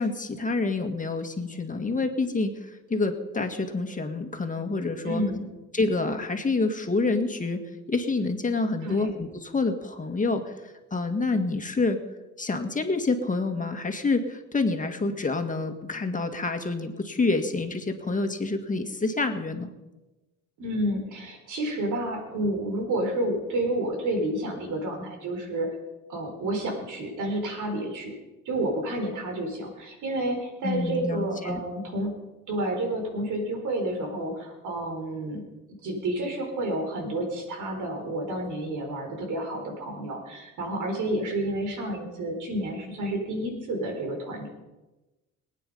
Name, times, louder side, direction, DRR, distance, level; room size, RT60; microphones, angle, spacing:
voice 1, 0.0-5.2 5.7-7.6 7.9-12.0 12.4-19.7 30.6-31.6, left 3 dB, 25° left, 6 dB, 1.8 m, -27 dB
voice 2, 5.0-5.5 8.8-9.1 20.6-25.7 26.1-28.1 28.5-32.1 32.5-35.4 35.8-44.5, right 1 dB, 80° right, 3 dB, 4.2 m, -30 dB
23.5 x 9.3 x 5.5 m, 1.1 s
cardioid pair, 90°, 30 cm